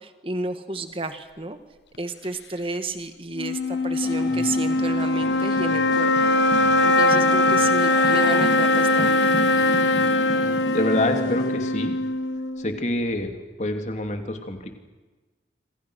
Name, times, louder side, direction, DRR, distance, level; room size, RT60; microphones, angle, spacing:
voice 1, 0.0-1.6 2.0-9.4, right 2 dB, 30° right, 8 dB, 1.8 m, -32 dB
sound 1, 3.3-12.8, left 2 dB, 85° left, 1.1 m, -21 dB
sound 2, 4.0-11.5, equal, 25° left, 5.3 m, -33 dB
voice 2, 10.7-11.9 12.6-13.3 13.6-14.8, left 1 dB, 40° left, 5 dB, 3.0 m, -26 dB
27.5 x 26.0 x 6.5 m, 1.2 s
head